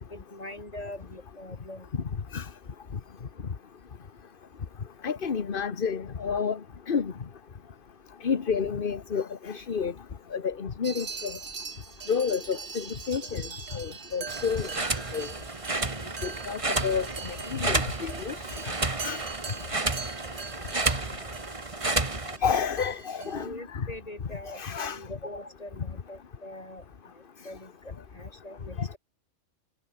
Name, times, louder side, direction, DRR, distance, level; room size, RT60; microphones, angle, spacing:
voice 1, 0.1-1.9 23.2-26.8 27.4-29.0, left 1 dB, 30° left, 5.4 m, -42 dB
voice 2, 5.0-6.6 6.9-7.1 8.2-9.9 10.3-11.3 12.1-13.4 13.7-14.7 15.1-15.3 16.2-18.7 19.0-19.3 22.4-23.9 24.5-25.0 28.8-28.9, left 6 dB, 45° left, 1.3 m, -30 dB
sound 1, 10.8-23.5, right 5 dB, 90° right, 2.1 m, -42 dB
sound 2, 14.3-22.4, right 3 dB, 25° right, 1.7 m, -31 dB
omnidirectional pair, 1.3 m